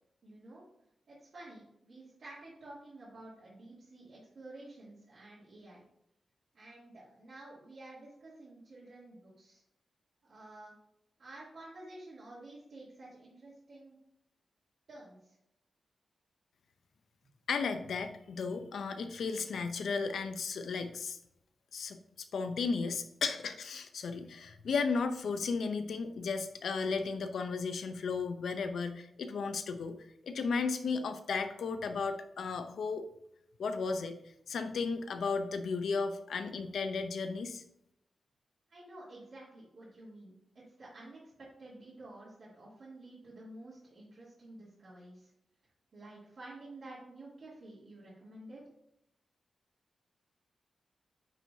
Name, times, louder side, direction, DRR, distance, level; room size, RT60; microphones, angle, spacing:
voice 1, 0.2-0.6 1.1-5.8 6.5-9.6 10.3-10.7 11.2-14.0 14.9-15.4 38.7-45.3 45.9-48.6, right 2 dB, 55° right, -11 dB, 2.7 m, -51 dB
voice 2, 17.5-21.2 21.7-30.0 30.2-33.0 33.6-34.2 34.5-37.6, left 4 dB, 80° left, 8 dB, 0.6 m, -34 dB
9.5 x 4.7 x 2.7 m, 0.78 s
wide cardioid pair, 155°, 0 cm